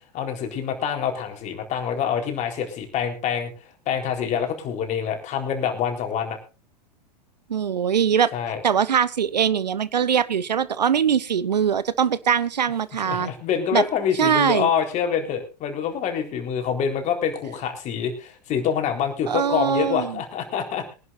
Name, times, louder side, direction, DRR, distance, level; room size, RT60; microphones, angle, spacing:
voice 1, 0.1-3.5 3.9-6.4 8.3-8.6 13.0-20.8, left 8 dB, 35° left, 4 dB, 4.1 m, -26 dB
voice 2, 7.5-8.3 8.6-13.3 13.7-13.8 14.1-14.7 19.3-20.2, right 8 dB, 80° right, 18 dB, 0.9 m, -22 dB
23.5 x 11.0 x 2.6 m, 0.31 s
figure-of-eight pair, 95°, 21 cm